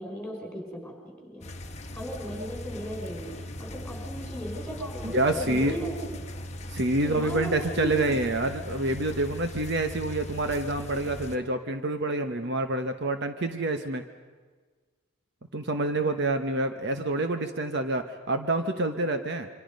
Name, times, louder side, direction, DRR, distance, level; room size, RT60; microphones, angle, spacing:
voice 1, 0.0-1.4 1.9-6.1 7.0-8.2, right 1 dB, 5° left, 0 dB, 5.4 m, -36 dB
sound 1, 1.4-11.4, left 1 dB, 30° left, 1.3 m, -39 dB
voice 2, 5.0-5.8 6.7-14.0 15.5-19.5, right 2 dB, 50° right, 7 dB, 1.1 m, -27 dB
27.0 x 25.0 x 5.4 m, 1.5 s
head